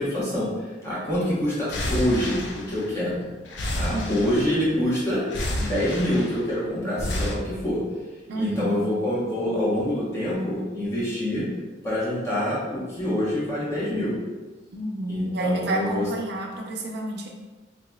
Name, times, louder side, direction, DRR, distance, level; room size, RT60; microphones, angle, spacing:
voice 1, 0.0-3.2 3.8-5.3 5.6-7.8 8.3-11.5 11.8-14.1 15.1-16.1, left 1 dB, 15° left, -8 dB, 1.1 m, -26 dB
sound 1, 1.7-3.1 3.5-4.8 5.3-6.5 7.0-7.3, left 1 dB, 85° left, 0.6 m, -30 dB
voice 2, 3.9-4.3 8.3-8.8 14.7-17.3, right 1 dB, 65° right, 0 dB, 0.6 m, -29 dB
3.9 x 2.9 x 2.3 m, 1.3 s
head